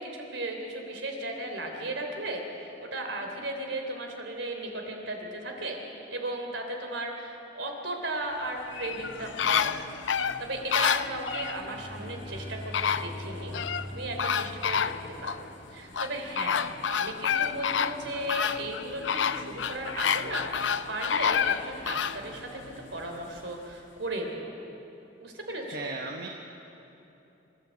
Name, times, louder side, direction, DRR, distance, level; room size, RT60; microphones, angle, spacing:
voice 1, 0.0-5.8 6.1-13.6 13.9-14.9 15.2-24.5 25.2-25.8, right 1 dB, 85° right, 3 dB, 3.3 m, -36 dB
sound 1, 8.1-23.3, equal, 40° left, 4.5 m, -49 dB
sound 2, 8.7-11.6 12.4-12.5 12.7-13.9 14.2-15.4 15.9-22.2 22.7-22.8, left 7 dB, 85° left, 0.6 m, -28 dB
Bowed string instrument, 11.6-15.4, left 1 dB, 20° right, 2.3 m, -42 dB
voice 2, 25.7-26.3, right 3 dB, 60° right, 1 dB, 1.2 m, -36 dB
25.5 x 12.5 x 8.3 m, 3.0 s
head